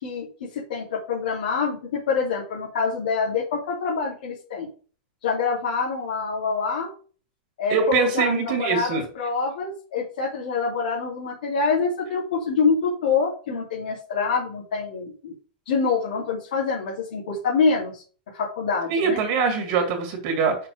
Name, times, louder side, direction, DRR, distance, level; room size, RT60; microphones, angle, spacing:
voice 1, 0.0-4.7 5.2-6.9 7.6-15.3 15.7-18.0 18.3-19.2, left 5 dB, 70° left, -5 dB, 2.9 m, -26 dB
voice 2, 7.7-9.1 18.9-20.6, right 5 dB, 40° right, 3 dB, 2.3 m, -23 dB
6.4 x 4.3 x 6.4 m, 0.39 s
supercardioid pair, 170°, 5 cm